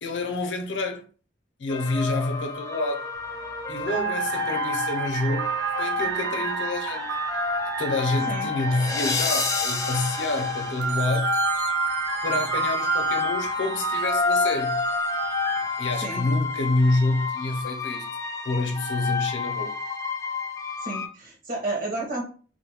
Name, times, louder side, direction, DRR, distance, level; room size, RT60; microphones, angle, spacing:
voice 1, 0.0-1.0 1.6-3.1 3.7-7.1 7.8-11.3 12.2-14.8 15.8-18.1 18.4-19.8, left 2 dB, 75° left, 0.5 m, -27 dB
sound 1, 1.7-21.1, left 5 dB, 20° left, 0.3 m, -30 dB
sound 2, 3.2-3.4 3.8-15.9, right 8 dB, 85° right, 0.3 m, -30 dB
sound 3, 10.8-17.6, right 2 dB, 35° right, 0.6 m, -46 dB
voice 2, 20.8-22.2, right 2 dB, 50° right, 1.0 m, -31 dB
2.5 x 2.2 x 2.8 m
head